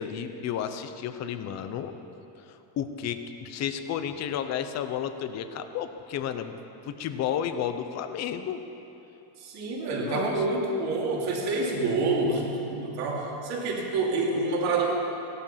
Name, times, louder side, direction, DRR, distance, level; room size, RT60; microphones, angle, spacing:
voice 1, 0.0-1.9 2.5-6.6 6.8-8.6 10.0-10.4, left 9 dB, 35° left, 9 dB, 0.7 m, -32 dB
voice 2, 9.4-14.9, right 3 dB, 55° right, -2 dB, 2.8 m, -27 dB
16.5 x 12.0 x 5.7 m, 3.0 s
cardioid pair, 180°, 46 cm